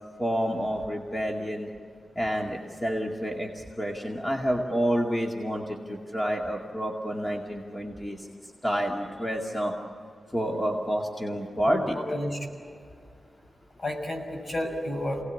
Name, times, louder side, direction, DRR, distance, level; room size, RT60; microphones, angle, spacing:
voice 1, 0.2-1.7 2.2-8.3 8.6-9.7 10.3-12.0, equal, 20° left, 0 dB, 2.4 m, -29 dB
voice 2, 11.7-12.5 13.8-15.2, left 1 dB, 50° left, 2 dB, 5.9 m, -31 dB
27.5 x 19.0 x 8.4 m, 2.3 s
wide cardioid pair, 90°, 0 cm